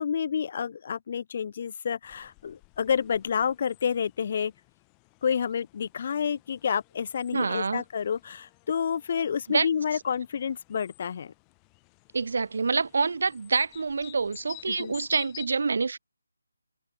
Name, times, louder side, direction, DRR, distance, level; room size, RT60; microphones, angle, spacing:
voice 1, 0.0-4.5 5.2-11.3 14.8-14.9, left 7 dB, 40° left, 0.7 m, -29 dB
sound 1, 2.0-15.5, left 40 dB or more, 15° left, 5.2 m, -52 dB
voice 2, 7.3-7.8 9.5-9.7 12.1-16.0, right 4 dB, 60° right, 0.8 m, -27 dB
figure-of-eight pair, 160°, 0 cm